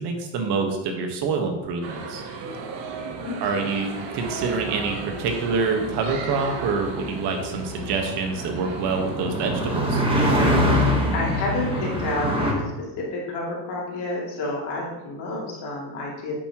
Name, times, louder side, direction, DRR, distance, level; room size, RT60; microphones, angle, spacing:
voice 1, 0.0-2.2 3.4-10.0, right 4 dB, 65° right, 4 dB, 1.5 m, -26 dB
sound 1, 1.8-9.9, right 4 dB, 85° right, 1.5 m, -35 dB
voice 2, 3.2-3.7 11.1-16.3, left 2 dB, 65° left, -4 dB, 2.8 m, -30 dB
sound 2, 4.0-12.5, equal, 10° right, 1.3 m, -25 dB
9.8 x 7.4 x 3.0 m, 1.0 s
cardioid pair, 170°, 44 cm